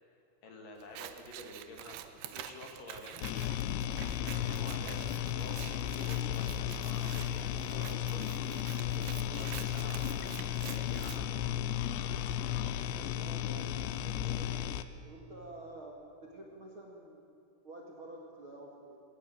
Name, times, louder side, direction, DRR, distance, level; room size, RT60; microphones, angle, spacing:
voice 1, 0.4-3.2 4.0-11.6, left 2 dB, 55° left, 2 dB, 3.5 m, -49 dB
Scissors, 0.8-11.2, right 11 dB, 75° right, 3.0 m, -48 dB
sound 1, 3.2-14.8, left 10 dB, 85° left, 3.1 m, -34 dB
voice 2, 12.9-14.5 15.0-17.2 17.6-19.0, right 2 dB, 40° right, -1 dB, 2.0 m, -49 dB
21.5 x 18.0 x 9.3 m, 2.6 s
omnidirectional pair, 5.2 m